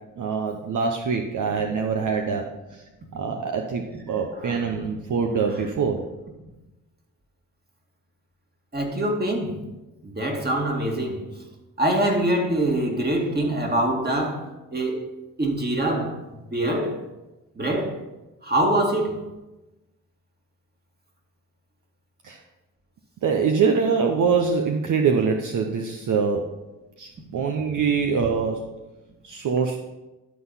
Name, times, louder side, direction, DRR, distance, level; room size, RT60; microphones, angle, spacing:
voice 1, 0.2-2.5 2.7-2.8 3.1-6.0 22.2-22.4 23.2-26.5 27.0-28.7 29.2-29.8, right 5 dB, 60° right, 0.9 m, -24 dB
voice 2, 8.7-9.6 10.0-11.3 11.8-15.1 15.4-17.0 17.6-18.0 18.4-19.2, right 1 dB, 30° right, 2.3 m, -24 dB
12.0 x 4.0 x 5.6 m
supercardioid pair, 55°, 35 cm